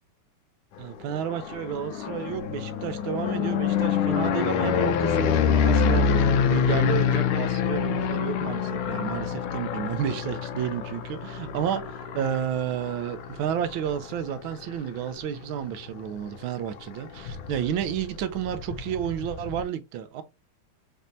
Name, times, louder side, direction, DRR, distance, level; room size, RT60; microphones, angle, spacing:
voice 1, 0.8-20.2, right 9 dB, 75° right, 1.4 m, -31 dB
sound 1, 1.0-15.0 15.4-15.9 16.2-16.3 16.5-16.6 16.8-19.6, left 7 dB, 85° left, 1.4 m, -26 dB
5.3 x 2.8 x 2.6 m
omnidirectional pair, 2.3 m